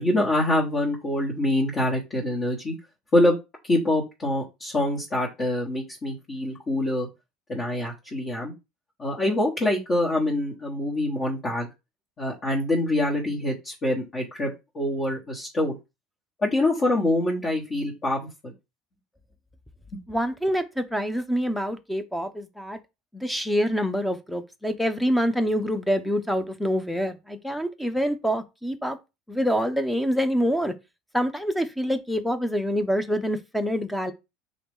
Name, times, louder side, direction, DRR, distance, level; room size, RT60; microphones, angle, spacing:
voice 1, 0.0-2.7 3.1-3.3 3.6-7.1 7.5-8.5 9.0-11.7 12.2-15.7 16.4-18.5 19.9-20.0, left 1 dB, 35° left, 1.3 m, -25 dB
voice 2, 20.1-22.8 23.1-29.0 29.3-30.7 31.1-34.1, equal, ahead, 0.5 m, -26 dB
3.8 x 2.8 x 3.6 m
hypercardioid pair, 90°, 0 cm